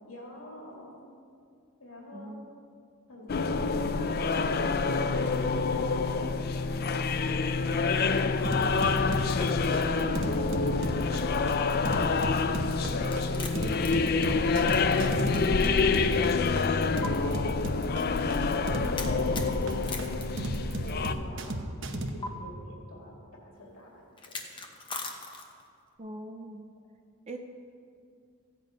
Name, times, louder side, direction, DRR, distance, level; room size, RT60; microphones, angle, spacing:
voice 1, 0.1-0.9 1.8-2.3 3.1-7.1 7.5-12.5 12.9-13.7 14.2-14.6 15.1-18.2 18.6-23.1 23.4-24.3, left 1 dB, 65° left, -2 dB, 2.5 m, -45 dB
voice 2, 2.1-2.5 26.0-26.7 27.3-27.4, right 1 dB, 30° right, 4 dB, 0.5 m, -41 dB
sound 1, 3.3-21.1, left 4 dB, 45° left, 0.4 m, -27 dB
sound 2, 8.4-22.1, right 1 dB, 55° right, 0.9 m, -34 dB
sound 3, 13.0-15.7 16.0-16.1 17.0-17.1 19.0-21.1 22.2-22.3 24.2-25.7, left 3 dB, 20° left, 1.0 m, -40 dB
15.0 x 8.4 x 5.1 m, 2.3 s
head